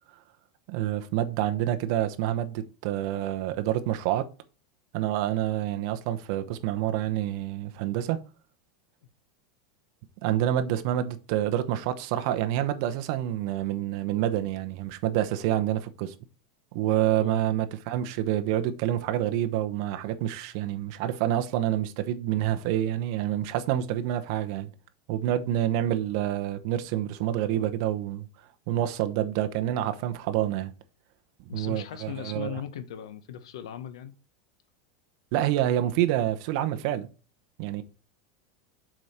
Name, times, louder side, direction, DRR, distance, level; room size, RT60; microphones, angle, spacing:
voice 1, 0.7-4.3 4.9-8.2 10.2-16.2 16.7-24.7 25.1-28.3 28.7-30.7 31.5-32.6 35.3-37.1 37.6-37.8, right 12 dB, 50° right, 0.9 m, -27 dB
voice 2, 31.5-34.1, left 10 dB, 90° left, 1.1 m, -38 dB
7.7 x 5.1 x 4.3 m
supercardioid pair, 170°, 3 cm